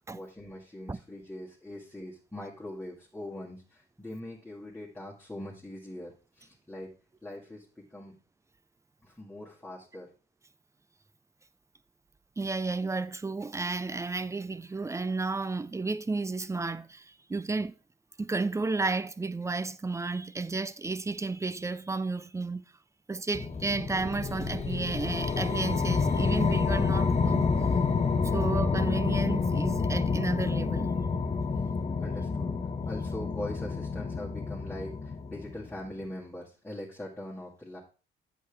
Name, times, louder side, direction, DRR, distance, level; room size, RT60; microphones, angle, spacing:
voice 1, 0.1-6.9 7.2-8.1 9.0-10.1 32.0-32.5 32.9-37.8, left 1 dB, 10° left, 1.9 m, -42 dB
voice 2, 12.4-17.8 18.2-22.7 23.1-27.5 28.2-30.9, right 3 dB, 15° right, 0.4 m, -32 dB
sound 1, 23.3-35.9, left 4 dB, 35° left, 0.9 m, -29 dB
8.1 x 6.6 x 3.3 m
cardioid pair, 90°, 20 cm